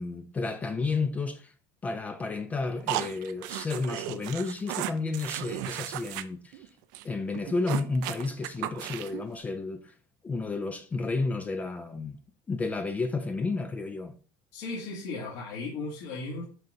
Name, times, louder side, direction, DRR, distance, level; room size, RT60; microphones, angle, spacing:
voice 1, 0.0-1.5 1.8-6.7 7.0-9.9 10.2-12.2 12.5-14.1, left 3 dB, 15° left, 0.4 m, -31 dB
sound 1, 2.9-6.2 6.5-6.7 6.9-7.0 7.3-9.2, right 14 dB, 75° right, 0.5 m, -35 dB
voice 2, 14.5-16.4, left 3 dB, 70° left, 2.5 m, -36 dB
11.0 x 3.8 x 2.7 m
cardioid pair, 170°, 10 cm